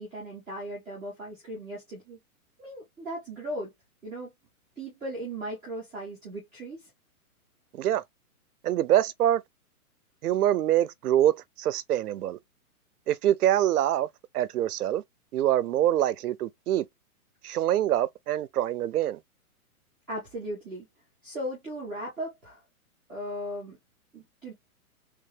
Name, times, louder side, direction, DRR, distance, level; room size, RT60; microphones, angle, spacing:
voice 1, 0.0-2.2 2.6-3.7 4.0-4.3 4.8-6.9 20.1-20.9 21.2-22.6 23.1-23.8 24.1-24.5, right 1 dB, ahead, 0.6 m, -37 dB
voice 2, 8.6-9.4 10.2-12.4 13.1-14.1 14.3-15.0 15.3-16.9 17.4-19.2, right 12 dB, 85° right, 0.6 m, -25 dB
3.5 x 2.8 x 3.3 m
hypercardioid pair, 175°, 44 cm